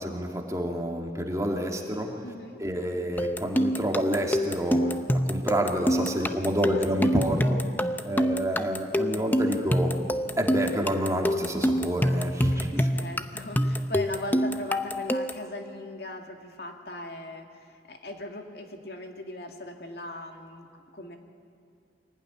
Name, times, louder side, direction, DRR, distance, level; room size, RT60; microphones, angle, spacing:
voice 1, 0.0-2.2 2.6-7.6 8.0-10.0 10.4-12.9, equal, 15° right, 2 dB, 2.2 m, -28 dB
voice 2, 2.2-2.6 6.2-6.9 12.5-21.2, left 2 dB, 60° left, 3 dB, 2.3 m, -39 dB
sound 1, 3.2-15.5, equal, 10° left, 0.7 m, -26 dB
24.0 x 17.5 x 9.9 m, 2.2 s
head